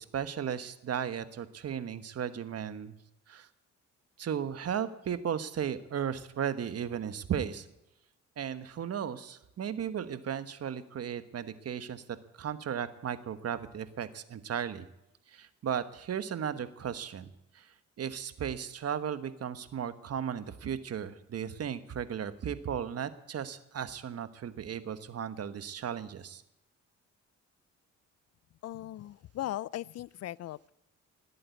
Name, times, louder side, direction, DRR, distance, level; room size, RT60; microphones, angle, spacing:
voice 1, 0.0-3.0 3.3-3.5 4.2-7.7 8.4-12.0 12.4-14.9 15.3-17.3 17.5-26.4, right 8 dB, 55° right, 12 dB, 1.2 m, -35 dB
voice 2, 28.6-30.7, left 14 dB, 55° left, 23 dB, 0.5 m, -38 dB
18.5 x 8.6 x 8.3 m, 0.87 s
cardioid pair, 90°, 30 cm